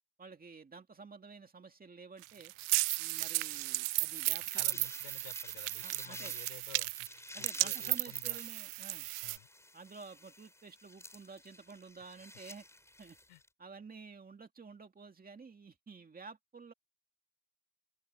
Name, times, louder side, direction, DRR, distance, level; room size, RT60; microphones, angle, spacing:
voice 1, 0.2-2.5 3.0-4.8 5.8-6.3 7.3-9.1 9.7-12.7 13.0-13.2 13.6-16.7, right 4 dB, 20° right, 2.3 m, -51 dB
sound 1, 2.2-9.4, right 24 dB, 75° right, 0.7 m, -34 dB
sound 2, 4.0-13.5, left 1 dB, 5° left, 6.7 m, -53 dB
voice 2, 4.5-7.1 7.4-8.4 9.2-9.5 13.3-13.4, left 23 dB, 85° left, 4.6 m, -53 dB
open air
cardioid pair, 145°, 49 cm